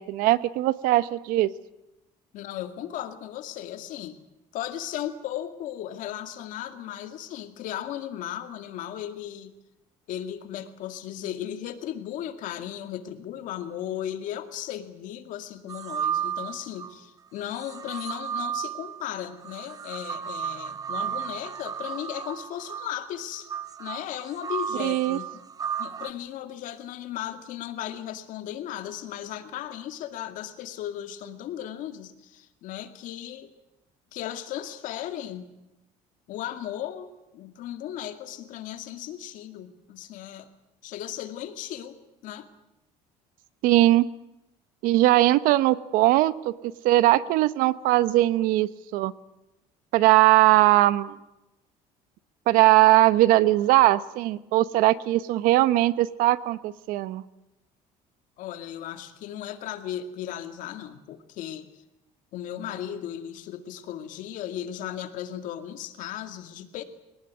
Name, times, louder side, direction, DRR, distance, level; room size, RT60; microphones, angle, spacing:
voice 1, 0.0-1.5 24.8-25.2 43.6-44.1 44.8-49.1 49.9-51.2 52.5-57.2, right 16 dB, 80° right, 16 dB, 1.0 m, -20 dB
voice 2, 2.3-4.2 4.5-9.5 10.1-23.5 23.8-25.4 25.8-33.5 34.1-35.5 36.3-37.1 37.3-40.5 40.8-42.0 42.2-42.5 58.4-61.7 62.3-66.8, left 11 dB, 65° left, 8 dB, 2.3 m, -36 dB
sound 1, 15.7-16.9 17.5-26.1, right 8 dB, 25° right, 0.8 m, -34 dB
22.5 x 19.0 x 9.5 m, 0.92 s
cardioid pair, 130°, 14 cm